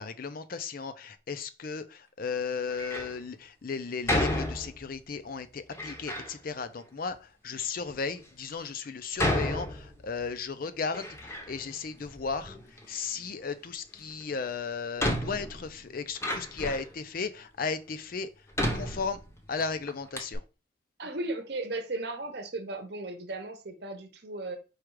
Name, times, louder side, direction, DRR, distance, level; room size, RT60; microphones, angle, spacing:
voice 1, 0.0-18.3 18.7-19.2 19.5-20.4, left 5 dB, 45° left, 0.4 m, -35 dB
Door, 2.7-3.2 4.1-5.0 5.7-6.3 7.1-7.2 7.9-8.0 9.2-10.3 10.7-11.7 12.0-12.9 14.2-14.3 15.0-16.9 17.6-17.7 18.5-19.6 19.9-20.0 20.1-20.4, left 1 dB, 15° left, 0.7 m, -32 dB
voice 2, 21.0-24.6, right 2 dB, 55° right, 0.8 m, -36 dB
4.7 x 2.4 x 4.6 m
head